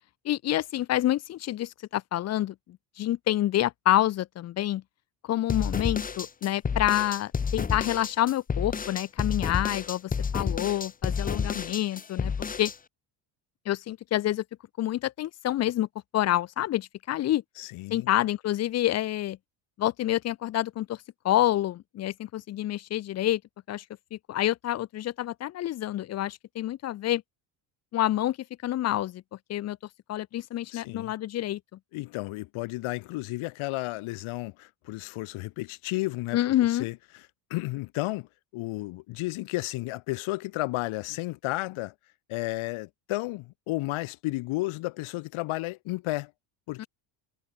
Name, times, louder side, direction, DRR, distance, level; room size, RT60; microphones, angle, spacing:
voice 1, 0.2-4.8 5.2-12.3 12.6-12.7 13.7-14.4 14.8-15.9 16.1-17.4 17.9-19.4 19.8-23.4 23.7-23.8 24.1-27.2 27.9-28.4 28.6-29.2 29.5-29.8 30.1-31.6 36.3-36.9 46.8-46.9, left 13 dB, 35° left, 0.4 m, -27 dB
sound 1, 5.5-12.8, left 6 dB, 15° left, 0.8 m, -30 dB
voice 2, 17.6-18.1 30.7-31.1 31.9-37.0 37.5-41.9 42.3-46.3 46.7-46.9, left 20 dB, 75° left, 3.5 m, -33 dB
cardioid pair, 120°, 49 cm